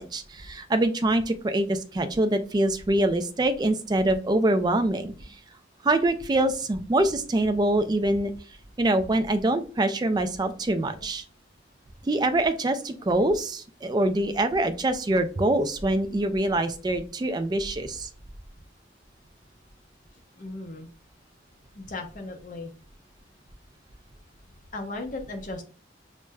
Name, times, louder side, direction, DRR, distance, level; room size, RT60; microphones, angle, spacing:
voice 1, 0.0-5.1 5.8-8.3 8.8-11.2 12.1-18.1, right 1 dB, 25° right, 8 dB, 0.3 m, -24 dB
voice 2, 20.4-20.9 21.8-22.7 24.7-25.6, left 2 dB, 45° left, 4 dB, 0.6 m, -36 dB
6.2 x 2.1 x 2.2 m, 0.39 s
head